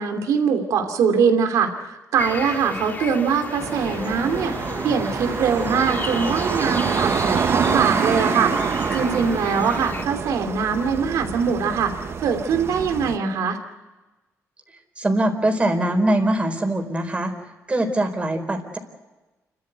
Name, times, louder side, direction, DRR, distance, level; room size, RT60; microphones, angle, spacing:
voice 1, 0.0-8.5 8.9-11.9 12.2-13.6, right 6 dB, 90° right, 6 dB, 2.8 m, -22 dB
sound 1, 2.2-10.0, left 3 dB, 35° left, 2.1 m, -33 dB
sound 2, 3.6-13.2, right 6 dB, 50° right, 1.1 m, -26 dB
voice 2, 15.0-17.3 17.7-18.8, right 1 dB, 20° right, 5 dB, 4.3 m, -22 dB
30.0 x 13.5 x 9.3 m, 1.1 s
cardioid pair, 105°, 6 cm